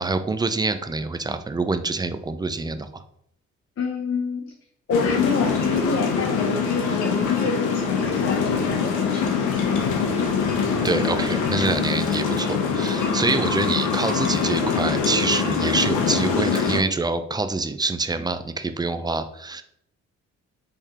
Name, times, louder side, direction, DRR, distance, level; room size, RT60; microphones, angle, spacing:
voice 1, 0.0-3.0 10.8-19.6, right 3 dB, 15° right, 10 dB, 0.4 m, -26 dB
voice 2, 3.8-4.5 4.9-9.9, left 4 dB, 45° left, 1 dB, 0.8 m, -28 dB
sound 1, 4.9-16.8, left 5 dB, 85° left, 0.9 m, -23 dB
3.6 x 3.3 x 4.2 m, 0.71 s
cardioid pair, 90°, 30 cm